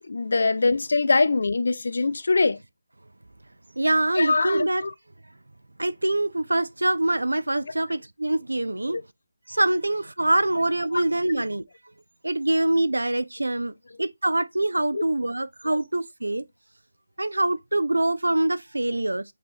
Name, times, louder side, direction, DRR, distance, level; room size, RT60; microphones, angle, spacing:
voice 1, 0.0-2.6 4.2-4.9 7.6-7.7 8.9-9.0 10.9-11.0 11.3-11.4 14.9-15.0, left 3 dB, 60° left, 0.5 m, -23 dB
voice 2, 3.8-4.8 5.8-9.0 9.5-11.6 12.2-16.5 17.2-19.2, right 1 dB, 80° right, 0.4 m, -24 dB
5.8 x 2.8 x 3.2 m
figure-of-eight pair, 155°, 0 cm